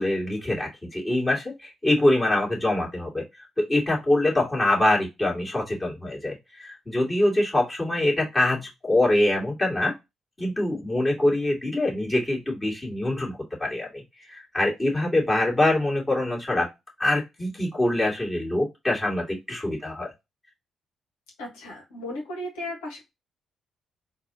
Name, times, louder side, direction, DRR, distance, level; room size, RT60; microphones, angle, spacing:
voice 1, 0.0-3.2 3.7-9.9 10.4-16.7 17.0-20.1, left 1 dB, 25° left, -3 dB, 2.4 m, -24 dB
voice 2, 21.4-23.0, left 1 dB, 80° left, -1 dB, 1.3 m, -35 dB
3.9 x 2.7 x 2.7 m, 0.22 s
figure-of-eight pair, 40°, 0 cm